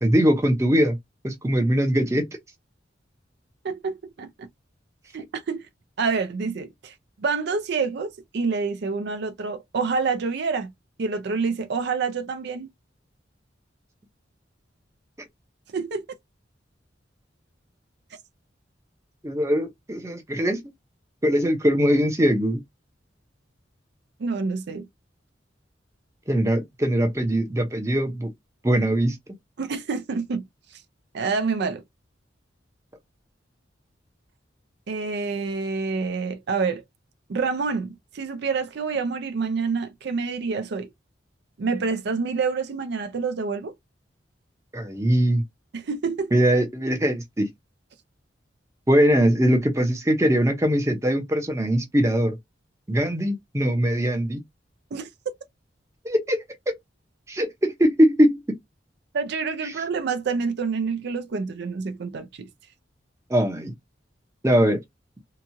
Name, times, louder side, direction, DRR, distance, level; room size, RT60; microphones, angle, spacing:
voice 1, 0.0-1.0 1.2-2.3 19.2-20.6 21.2-22.6 26.3-28.3 28.6-29.2 44.7-45.4 46.3-47.5 48.9-52.4 52.9-54.4 56.0-56.4 57.3-58.4 59.6-59.7 63.3-63.7 64.4-64.8, equal, 15° right, 0.7 m, -21 dB
voice 2, 3.6-4.5 5.1-5.7 6.0-10.7 11.0-12.7 15.7-16.1 24.2-24.9 29.6-30.5 31.1-31.8 34.9-36.8 37.3-40.9 41.6-43.7 45.7-46.3 54.9-55.1 59.1-62.5, right 4 dB, 60° right, 0.4 m, -27 dB
2.9 x 2.3 x 2.7 m
head